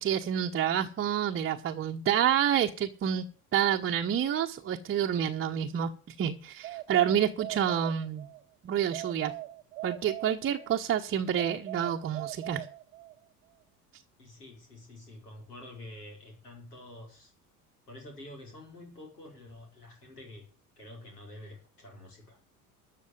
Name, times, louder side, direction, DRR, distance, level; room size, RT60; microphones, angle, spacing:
voice 1, 0.0-3.3 3.5-8.3 8.6-9.3 9.8-12.7, right 9 dB, 30° right, 1.0 m, -28 dB
sound 1, 6.6-8.4 8.9-10.8 11.4-13.2, right 16 dB, 65° right, 0.8 m, -41 dB
voice 2, 14.2-17.3 17.9-20.4 20.8-22.4, left 1 dB, 80° left, 4.9 m, -48 dB
13.5 x 5.9 x 9.5 m
figure-of-eight pair, 65°, 45 cm